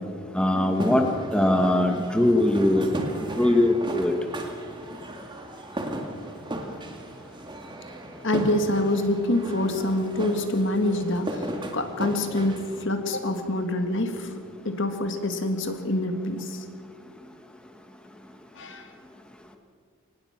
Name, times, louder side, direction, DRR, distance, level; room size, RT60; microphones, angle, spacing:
voice 1, 0.3-1.0 1.3-2.9 3.4-4.1, left 1 dB, 5° left, 4 dB, 1.2 m, -21 dB
sound 1, 0.7-12.8, right 1 dB, 20° right, 2.0 m, -36 dB
voice 2, 8.2-11.4 11.7-14.4 14.7-16.6 18.6-18.9, left 1 dB, 55° left, 7 dB, 1.9 m, -26 dB
24.5 x 19.0 x 5.9 m, 2.2 s
head